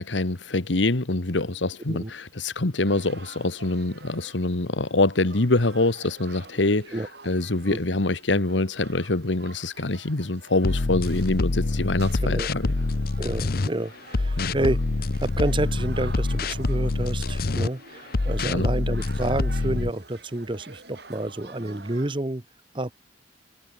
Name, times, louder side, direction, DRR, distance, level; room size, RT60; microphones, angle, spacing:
voice 1, 0.0-6.9 7.2-12.7 14.4-14.5 18.5-18.7, left 2 dB, 85° left, 1.5 m, -25 dB
sound 1, 2.9-22.1, right 3 dB, 60° right, 7.0 m, -48 dB
sound 2, 10.6-13.7 14.1-17.7 18.1-19.9, left 2 dB, 55° left, 0.8 m, -26 dB
voice 2, 13.2-14.8 15.2-22.4 22.7-22.9, right 1 dB, 25° right, 1.0 m, -29 dB
head